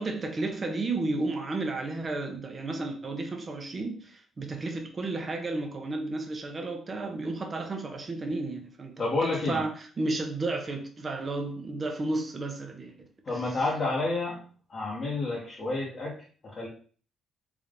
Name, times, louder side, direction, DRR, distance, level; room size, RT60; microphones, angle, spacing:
voice 1, 0.0-9.7 10.0-12.9 13.3-13.4, right 2 dB, 35° right, 0.8 m, -32 dB
voice 2, 9.0-9.6 13.3-14.4 14.7-16.2 16.4-16.7, left 2 dB, 45° left, 1.1 m, -29 dB
3.5 x 2.6 x 3.7 m
cardioid pair, 90°, 0 cm